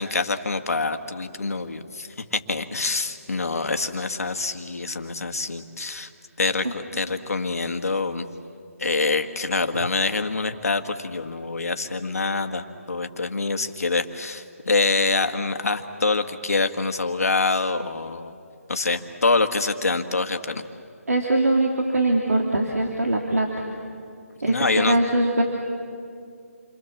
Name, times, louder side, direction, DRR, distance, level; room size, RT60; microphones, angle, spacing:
voice 1, 0.0-6.1 6.4-8.2 8.8-18.3 18.7-20.6 24.5-25.0, left 3 dB, 75° left, 6 dB, 1.9 m, -25 dB
voice 2, 21.1-23.6 24.4-25.4, right 2 dB, 85° right, 1 dB, 3.0 m, -22 dB
29.0 x 25.5 x 7.3 m, 2.4 s
figure-of-eight pair, 160°, 8 cm